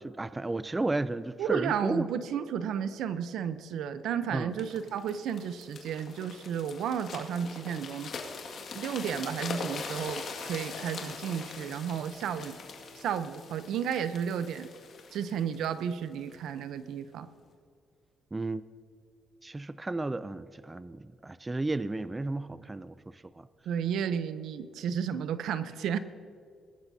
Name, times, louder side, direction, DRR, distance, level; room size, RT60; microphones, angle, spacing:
voice 1, 0.0-2.1 4.3-4.5 18.3-18.6 19.4-23.5, right 2 dB, 20° right, 15 dB, 0.4 m, -33 dB
voice 2, 1.4-8.1 8.7-10.2 10.5-12.6 13.0-14.7 15.1-17.3 23.7-26.0, right 8 dB, 80° right, 12 dB, 0.7 m, -32 dB
sound 1, 4.6-16.4 17.0-17.2, left 4 dB, 60° left, 2.0 m, -42 dB
Bowed string instrument, 9.8-15.0, left 1 dB, 50° right, 3.9 m, -57 dB
21.0 x 12.0 x 2.8 m, 2.2 s
cardioid pair, 90°, 0 cm